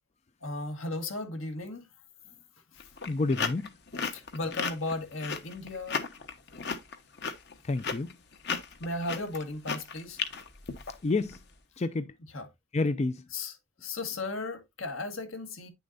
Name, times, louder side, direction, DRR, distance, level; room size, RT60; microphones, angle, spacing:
voice 1, 0.4-1.9 4.1-6.0 8.8-10.2 12.3-12.5 13.3-13.5 13.8-15.7, left 2 dB, 75° left, 1.9 m, -35 dB
sound 1, 2.8-11.4, left 5 dB, 50° left, 1.1 m, -35 dB
voice 2, 3.1-3.7 7.6-8.1 11.0-11.4 11.8-12.1 12.7-13.2, left 3 dB, 30° left, 0.4 m, -29 dB
9.6 x 6.9 x 2.6 m
head